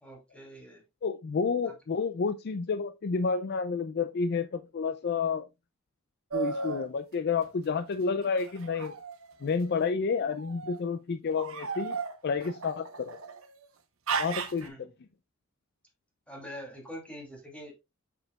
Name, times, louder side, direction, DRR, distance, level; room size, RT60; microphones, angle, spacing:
voice 1, 0.0-0.8 1.6-1.7 14.6-14.8 16.3-17.8, equal, 5° left, 2.7 m, -44 dB
voice 2, 1.0-5.5 6.3-9.0 9.4-12.0 12.2-13.2 14.2-14.9, left 5 dB, 50° left, 0.4 m, -30 dB
sound 1, 6.3-6.9 8.4-9.6 10.3-10.8 11.4-13.5 14.1-14.7, right 5 dB, 80° right, 1.1 m, -35 dB
8.0 x 6.2 x 2.3 m
head